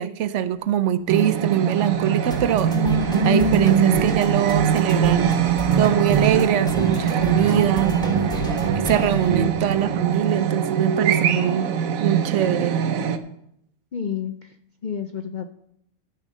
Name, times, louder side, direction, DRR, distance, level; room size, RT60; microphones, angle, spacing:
voice 1, 0.0-2.7 3.2-5.4 5.8-8.0 8.7-11.7 12.0-12.8, right 10 dB, 65° right, 14 dB, 0.9 m, -22 dB
sound 1, 1.1-13.2, right 8 dB, 85° right, 1.2 m, -23 dB
sound 2, 1.5-10.1, left 2 dB, 5° left, 1.9 m, -36 dB
sound 3, 2.7-9.5, right 4 dB, 45° right, 0.5 m, -25 dB
voice 2, 13.9-14.6 14.8-15.5, left 7 dB, 65° left, 9 dB, 0.4 m, -30 dB
12.5 x 6.4 x 5.4 m, 0.75 s
omnidirectional pair, 1.4 m